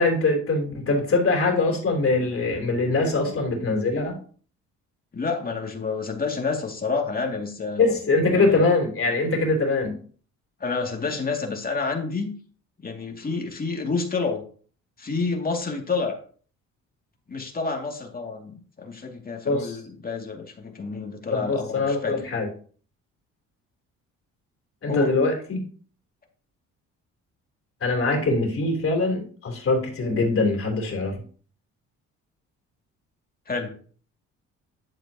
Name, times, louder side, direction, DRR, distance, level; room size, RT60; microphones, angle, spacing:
voice 1, 0.0-4.2 7.8-10.0 19.4-19.8 21.3-22.5 24.8-25.7 27.8-31.2, left 3 dB, 45° left, 1 dB, 3.5 m, -23 dB
voice 2, 5.1-7.8 8.3-8.6 10.6-12.3 12.8-14.4 15.0-16.2 17.3-22.2 24.9-25.1 33.5-33.7, left 4 dB, 30° left, 2 dB, 2.5 m, -29 dB
10.5 x 8.1 x 2.9 m, 0.43 s
supercardioid pair, 80°, 31 cm